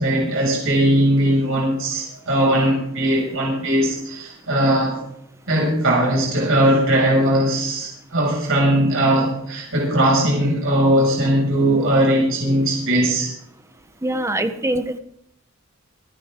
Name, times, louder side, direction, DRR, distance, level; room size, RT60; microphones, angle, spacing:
voice 1, 0.0-5.0 5.5-13.3, right 1 dB, 65° right, -2 dB, 6.5 m, -19 dB
voice 2, 14.0-15.0, right 1 dB, 15° right, 9 dB, 1.1 m, -23 dB
26.5 x 10.0 x 3.8 m, 0.74 s
head